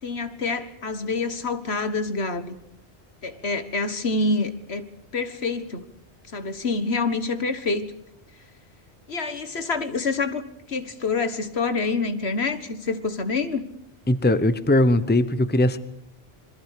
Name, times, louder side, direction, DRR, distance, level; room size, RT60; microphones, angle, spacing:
voice 1, 0.0-2.5 3.2-5.8 6.3-7.9 9.1-10.4 10.7-13.7, left 3 dB, 75° left, 10 dB, 1.9 m, -27 dB
voice 2, 14.1-15.8, left 1 dB, 10° left, 13 dB, 0.9 m, -20 dB
27.0 x 21.5 x 6.7 m, 0.76 s
omnidirectional pair, 1.1 m